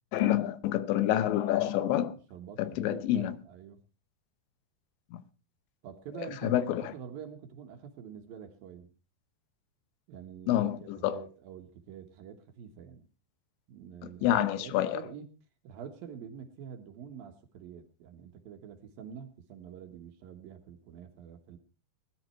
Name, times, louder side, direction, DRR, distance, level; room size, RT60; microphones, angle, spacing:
voice 1, 0.1-2.1 2.6-3.4 5.1-5.2 6.4-6.8 10.5-11.2 14.0-15.0, left 12 dB, 85° left, 3.2 m, -28 dB
voice 2, 2.3-3.8 5.8-8.9 10.1-13.0 13.7-15.3 15.6-21.6, right 8 dB, 65° right, 2.8 m, -46 dB
20.0 x 11.5 x 4.4 m
omnidirectional pair, 5.1 m